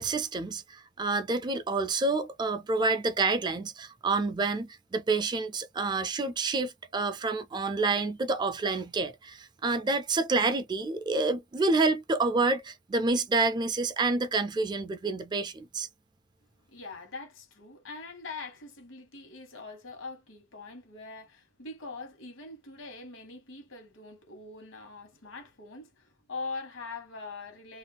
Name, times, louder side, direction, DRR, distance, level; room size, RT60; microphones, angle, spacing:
voice 1, 0.0-15.9, right 3 dB, 20° right, 0.3 m, -28 dB
voice 2, 16.7-27.8, left 3 dB, 75° left, 1.2 m, -43 dB
2.5 x 2.3 x 3.3 m
head